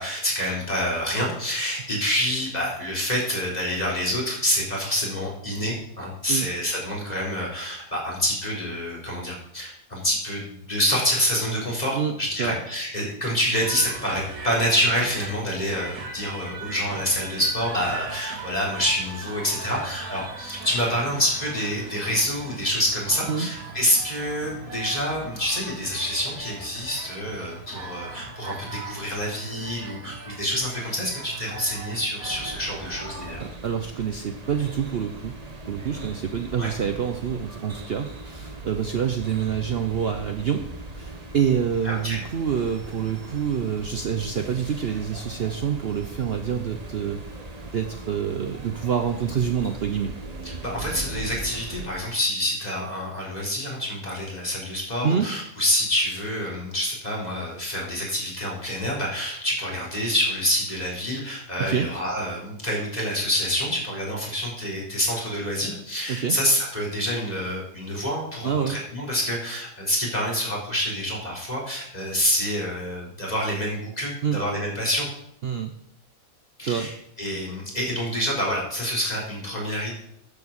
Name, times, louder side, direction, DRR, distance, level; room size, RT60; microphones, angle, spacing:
voice 1, 0.0-33.5 36.6-36.7 41.8-42.2 50.4-75.1 76.6-79.9, equal, 30° left, -4 dB, 3.9 m, -27 dB
voice 2, 11.9-12.5 23.3-23.5 33.4-35.3 35.7-40.6 41.0-47.2 47.7-50.1 55.0-55.3 61.6-61.9 66.1-66.4 68.4-68.8 74.2-74.4 75.4-75.7 76.6-76.9, right 7 dB, 50° right, 6 dB, 0.9 m, -27 dB
sound 1, 13.5-33.4, right 3 dB, 80° right, 2.3 m, -39 dB
sound 2, 32.2-51.9, right 2 dB, 30° right, 1.2 m, -39 dB
9.9 x 7.1 x 7.1 m, 0.74 s
omnidirectional pair, 1.5 m